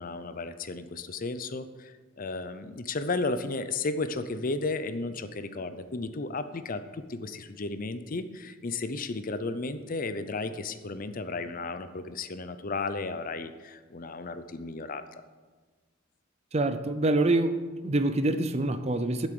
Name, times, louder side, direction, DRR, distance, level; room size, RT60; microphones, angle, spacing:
voice 1, 0.0-15.0, left 3 dB, 40° left, 11 dB, 0.6 m, -34 dB
voice 2, 16.5-17.6 17.8-19.3, right 2 dB, 30° right, 11 dB, 0.6 m, -25 dB
7.9 x 7.5 x 7.7 m, 1.3 s
head